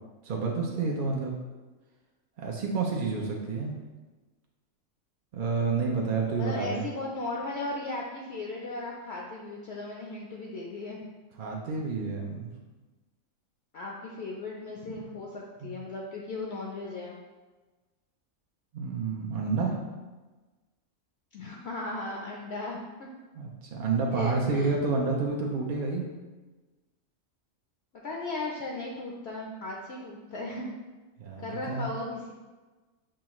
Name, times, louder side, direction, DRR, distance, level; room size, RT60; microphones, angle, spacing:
voice 1, 0.2-1.3 2.4-3.7 5.3-6.8 11.4-12.5 15.6-15.7 18.7-19.8 23.4-26.1 31.2-31.9, right 4 dB, 65° right, -1 dB, 0.5 m, -29 dB
voice 2, 6.4-11.0 13.7-17.1 21.3-23.1 24.1-24.7 27.9-30.7 31.4-32.3, left 2 dB, 65° left, -2 dB, 0.7 m, -36 dB
6.2 x 2.3 x 2.9 m, 1.2 s
omnidirectional pair, 1.4 m